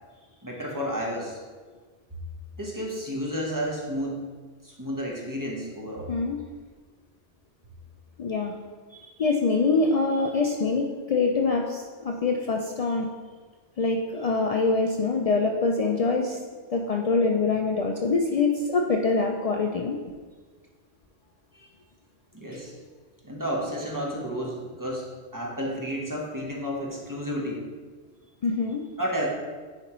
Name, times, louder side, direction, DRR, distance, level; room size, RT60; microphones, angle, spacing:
voice 1, 0.4-1.4 2.6-4.3 4.6-6.1 21.5-21.7 22.3-22.7 23.2-27.6 29.0-29.3, equal, 20° right, -2 dB, 0.9 m, -31 dB
voice 2, 8.2-8.5 9.0-13.1 13.8-16.4 16.7-20.0 28.4-28.8, left 3 dB, 75° left, 1 dB, 0.3 m, -24 dB
9.7 x 4.3 x 3.1 m, 1.5 s
omnidirectional pair, 1.2 m